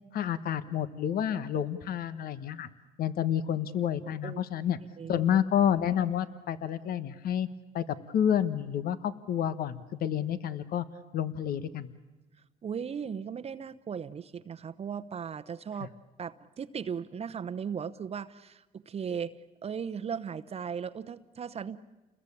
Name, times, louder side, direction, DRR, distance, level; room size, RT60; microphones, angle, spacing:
voice 1, 0.1-2.7 3.0-4.8 5.1-7.5 7.7-10.9 11.1-11.9, left 9 dB, 60° left, 13 dB, 1.2 m, -29 dB
voice 2, 12.6-15.9 16.2-19.3 19.6-21.8, right 7 dB, 35° right, 11 dB, 0.9 m, -37 dB
29.5 x 21.0 x 8.6 m, 1.1 s
cardioid pair, 110°, 17 cm